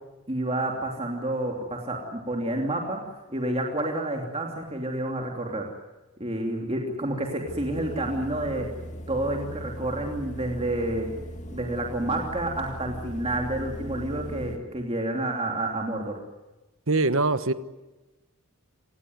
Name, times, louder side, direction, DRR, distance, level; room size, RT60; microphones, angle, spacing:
voice 1, 0.3-3.0 3.3-5.7 6.2-8.7 9.1-11.1 11.5-16.1, right 1 dB, 25° right, 1 dB, 2.9 m, -29 dB
sound 1, 7.5-14.6, equal, 35° left, 2.1 m, -38 dB
voice 2, 16.9-17.5, right 3 dB, 65° right, 13 dB, 1.3 m, -22 dB
26.5 x 19.0 x 9.4 m, 1.1 s
head